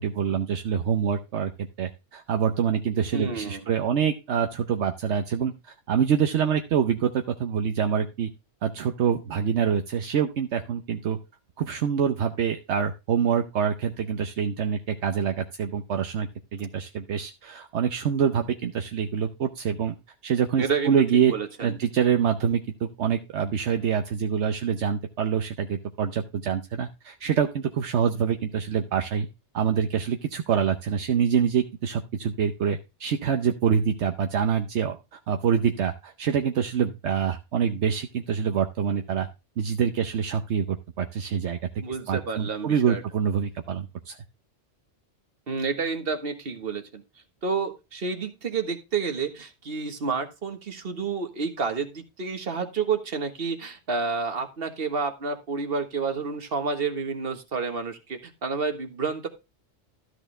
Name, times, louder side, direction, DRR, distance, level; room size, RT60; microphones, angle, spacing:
voice 1, 0.0-1.5 1.8-8.3 8.6-11.2 11.6-20.0 20.2-21.3 21.6-29.3 29.5-39.3 39.6-41.6 42.1-44.2, right 7 dB, 75° right, 5 dB, 1.1 m, -26 dB
voice 2, 3.1-3.6 20.6-21.0 21.3-21.7 41.8-43.0 45.5-47.0 47.4-59.3, right 5 dB, 55° right, 7 dB, 1.6 m, -29 dB
13.0 x 6.3 x 3.2 m, 0.27 s
omnidirectional pair, 1.2 m